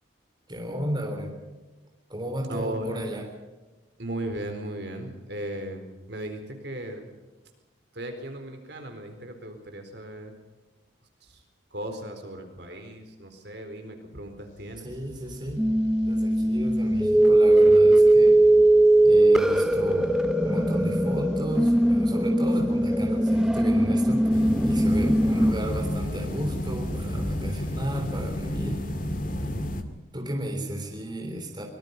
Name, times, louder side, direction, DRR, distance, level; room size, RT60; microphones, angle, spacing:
voice 1, 0.5-1.4 2.1-3.2 14.8-15.7 16.1-18.4 19.0-20.1 20.4-28.9 29.3-29.6 30.1-31.6, equal, 20° right, 2 dB, 3.6 m, -34 dB
voice 2, 2.5-3.1 4.0-7.0 7.9-10.3 11.2-11.4 11.7-14.9 25.0-25.1, right 1 dB, 60° right, 5 dB, 4.2 m, -36 dB
sound 1, 14.5-29.3, equal, 80° left, 4.2 m, -47 dB
sound 2, 15.6-25.5, right 1 dB, 5° right, 0.6 m, -20 dB
sound 3, 24.3-29.8, left 1 dB, 45° left, 2.1 m, -31 dB
24.5 x 20.5 x 5.4 m, 1.2 s
head